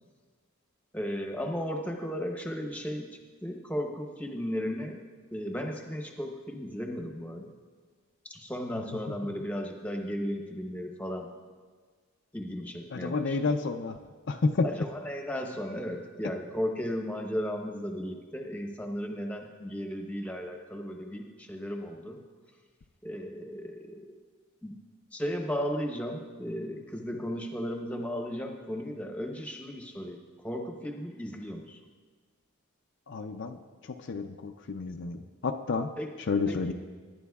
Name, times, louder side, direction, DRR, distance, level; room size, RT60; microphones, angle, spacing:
voice 1, 0.9-3.1 3.4-5.0 5.3-7.5 8.2-11.3 12.3-13.6 14.6-22.2 23.0-24.1 24.6-24.7 25.1-31.8 36.0-36.2 36.5-36.7, equal, 5° left, 3 dB, 0.9 m, -35 dB
voice 2, 12.9-14.0 14.3-14.7 33.1-33.6 34.1-35.9 36.3-36.7, left 4 dB, 55° left, 5 dB, 0.5 m, -30 dB
19.5 x 10.0 x 2.3 m, 1.5 s
head